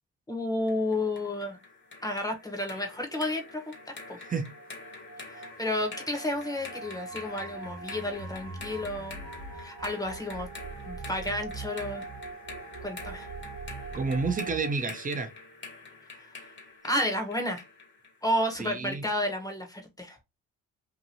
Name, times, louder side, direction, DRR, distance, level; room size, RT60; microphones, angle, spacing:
voice 1, 0.3-1.6 2.0-4.2 5.3-9.2 9.6-10.5 10.9-12.1 12.8-13.3 16.8-17.6 18.2-20.2, left 1 dB, 10° left, 0.8 m, -31 dB
sound 1, 0.7-18.5, left 3 dB, 40° left, 1.1 m, -46 dB
sound 2, 3.5-14.7, right 4 dB, 65° right, 0.9 m, -42 dB
voice 2, 4.2-4.5 13.9-15.3 18.6-19.0, right 4 dB, 30° right, 0.6 m, -30 dB
2.9 x 2.5 x 2.6 m
cardioid pair, 90°, 30 cm